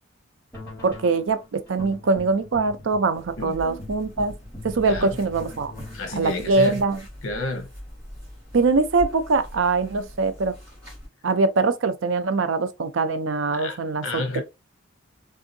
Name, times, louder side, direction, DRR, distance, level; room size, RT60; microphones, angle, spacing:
sound 1, 0.5-6.0, left 2 dB, 10° left, 1.9 m, -42 dB
voice 1, 0.8-4.3 4.6-5.7 6.2-7.0 8.5-10.6 11.2-14.4, right 3 dB, 70° right, 0.5 m, -23 dB
sound 2, 3.1-11.1, equal, 15° right, 2.1 m, -42 dB
voice 2, 3.4-3.8 4.9-5.2 5.9-6.8 7.2-7.7 13.5-14.4, left 2 dB, 85° left, 0.9 m, -31 dB
3.6 x 2.7 x 2.6 m
head